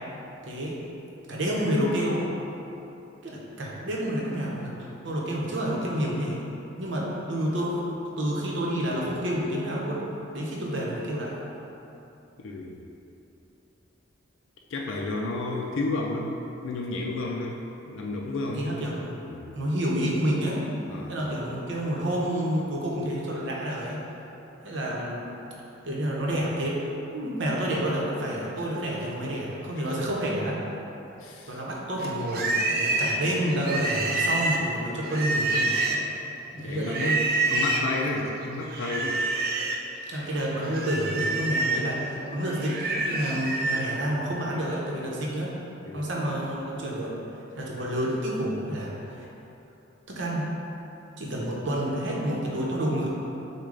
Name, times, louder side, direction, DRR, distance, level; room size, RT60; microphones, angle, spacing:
voice 1, 0.4-0.8 1.3-2.2 3.2-6.4 6.8-10.0 10.3-11.3 18.5-19.1 19.5-20.6 21.1-24.0 24.6-25.2 25.8-26.8 27.1-30.6 31.5-35.8 36.5-37.2 40.1-45.5 45.9-47.1 47.6-49.3 50.1-50.5 51.2-53.1, equal, 70° right, -4 dB, 0.8 m, -29 dB
voice 2, 12.4-12.8 14.7-18.6 19.3-19.5 20.9-21.1 31.2-31.6 36.6-37.1 37.5-39.4 40.1-40.2 45.8-46.1, left 2 dB, 80° left, -1 dB, 0.4 m, -32 dB
Livestock farm animals working animals, 32.0-36.2 36.8-37.9 38.7-39.9 40.2-43.9, right 2 dB, 50° right, 0.4 m, -27 dB
6.3 x 2.2 x 3.8 m, 2.9 s
head